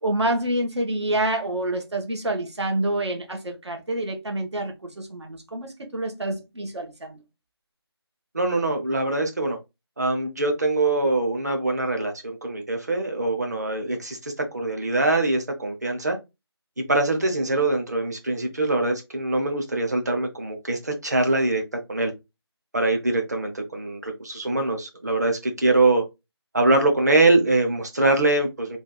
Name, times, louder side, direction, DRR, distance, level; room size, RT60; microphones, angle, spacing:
voice 1, 0.0-7.2, right 1 dB, 90° right, 1.5 m, -27 dB
voice 2, 8.3-9.6 10.0-16.2 16.8-21.6 21.9-22.1 22.7-26.0 26.5-28.8, right 2 dB, 40° right, 0.9 m, -23 dB
3.3 x 2.7 x 3.8 m
figure-of-eight pair, 180°, 14 cm